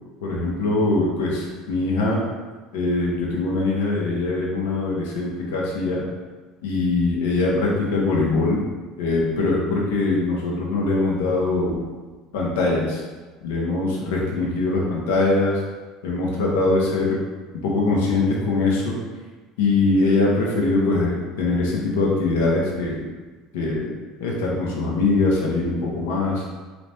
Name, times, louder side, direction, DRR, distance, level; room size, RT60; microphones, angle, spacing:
voice 1, 0.2-2.2 2.7-6.0 6.6-8.6 9.0-11.9 12.3-13.0 13.4-15.6 16.0-17.2 17.5-19.0 19.6-23.0 23.5-23.9 24.2-26.4, left 3 dB, 90° left, -3 dB, 1.0 m, -22 dB
4.0 x 2.9 x 3.4 m, 1.3 s
supercardioid pair, 90°, 0 cm